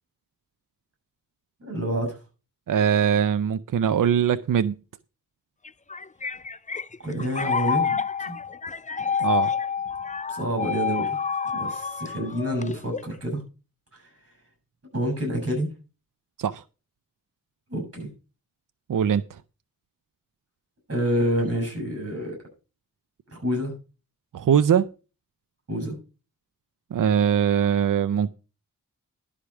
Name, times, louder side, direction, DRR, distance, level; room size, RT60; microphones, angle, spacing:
voice 1, 1.6-2.2 7.0-8.3 10.3-11.2 11.5-13.4 14.9-15.7 17.7-18.1 20.9-22.4 23.3-23.7 25.7-25.9, equal, 45° right, 7.2 m, -28 dB
voice 2, 2.7-4.8 9.2-9.5 16.4-16.6 18.9-19.2 24.3-24.9 26.9-28.3, right 8 dB, 65° right, 0.5 m, -21 dB
sound 1, 5.7-13.2, left 6 dB, 20° left, 0.5 m, -28 dB
11.5 x 4.9 x 7.0 m
wide cardioid pair, 70°, 34 cm